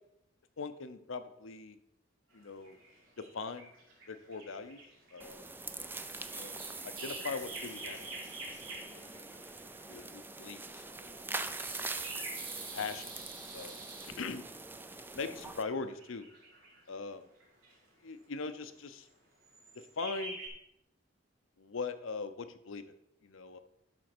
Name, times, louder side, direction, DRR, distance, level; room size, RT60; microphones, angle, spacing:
voice 1, 0.6-1.8 2.3-2.8 3.3-3.7 4.1-4.8 5.1-5.4 6.3-6.5 6.8-8.1 8.9-9.4 9.8-11.3 12.3-12.4 12.7-13.2 13.5-13.8 14.2-14.5 15.1-16.3 16.9-17.3 18.0-19.1 20.0-20.4 21.6-22.9 23.2-23.6, left 4 dB, 85° left, 10 dB, 0.7 m, -41 dB
sound 1, 2.3-10.1 11.0-14.2 15.6-16.9 17.3-17.8 18.8-19.1 19.4-20.5, right 2 dB, 85° right, 2.7 m, -48 dB
sound 2, 5.2-15.6, right 3 dB, 10° right, 0.5 m, -43 dB
11.5 x 4.1 x 6.1 m, 0.79 s
head